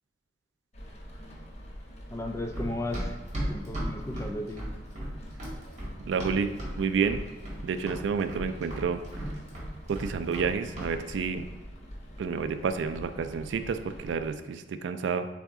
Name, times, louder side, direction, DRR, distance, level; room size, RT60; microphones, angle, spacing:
Rain, 0.7-14.3, equal, 40° left, 0.8 m, -45 dB
voice 1, 2.1-3.2 3.5-4.7, left 1 dB, 15° left, 4 dB, 0.4 m, -35 dB
Run, 2.5-6.8 7.0-7.6 7.9-10.5 10.8-10.9, equal, 40° right, 1.5 m, -35 dB
voice 2, 6.0-7.2 7.6-9.0 9.9-11.4 12.2-15.3, right 5 dB, 80° right, 10 dB, 0.3 m, -30 dB
4.1 x 3.6 x 3.5 m, 1.3 s
head